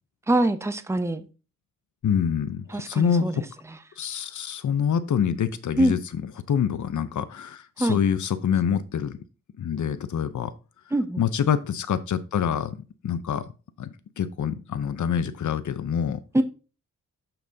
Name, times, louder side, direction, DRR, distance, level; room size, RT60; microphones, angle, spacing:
voice 1, 0.3-1.2 2.7-3.4 5.8-5.9 7.8-8.0 10.9-11.2 16.3-16.4, right 1 dB, 10° right, 0.7 m, -23 dB
voice 2, 2.0-3.4 4.0-6.2 6.5-9.2 9.6-10.5 11.2-12.8 13.0-13.5 13.8-16.2, left 8 dB, 65° left, 0.8 m, -26 dB
6.8 x 5.8 x 2.8 m
cardioid pair, 70°, 32 cm